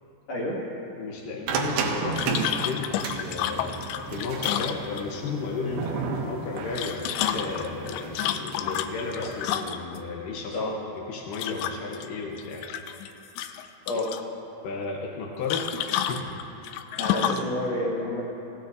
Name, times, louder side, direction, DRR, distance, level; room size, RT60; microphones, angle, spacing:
voice 1, 0.9-10.7 11.1-12.6 14.6-15.7 16.1-16.3, left 4 dB, 75° left, -2 dB, 2.0 m, -33 dB
sound 1, 1.5-9.6, right 5 dB, 75° right, 2.5 m, -33 dB
sound 2, 2.2-5.3 6.6-10.0 11.3-12.1 12.4-13.1 13.4-14.2 15.5-17.5, left 10 dB, 90° left, 2.8 m, -30 dB
voice 2, 17.0-18.2, left 1 dB, 55° left, -5 dB, 3.3 m, -29 dB
17.0 x 16.0 x 2.6 m, 2.9 s
omnidirectional pair, 5.1 m